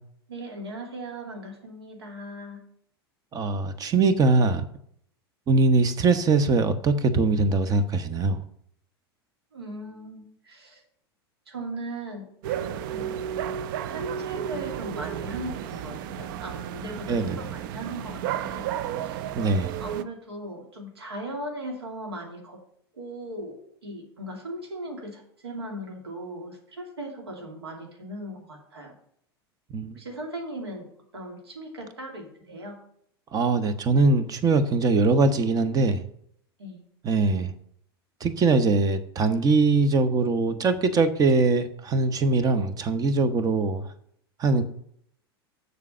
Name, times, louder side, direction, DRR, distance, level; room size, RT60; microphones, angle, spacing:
voice 1, 0.3-2.6 9.5-10.8 11.5-13.2 13.9-18.7 19.0-19.3 19.8-22.6 22.9-28.9 29.9-30.9 31.1-32.8 36.6-36.8, right 1 dB, 80° right, 0 dB, 2.6 m, -38 dB
voice 2, 3.3-4.6 5.5-8.4 17.1-17.4 19.4-19.7 29.7-29.9 33.3-36.0 37.0-37.5 38.2-43.8 44.4-44.6, right 3 dB, 30° right, 11 dB, 1.1 m, -22 dB
sound 1, 12.4-20.0, right 10 dB, 55° right, 0.6 m, -33 dB
7.3 x 6.7 x 6.9 m, 0.68 s
figure-of-eight pair, 85°, 13 cm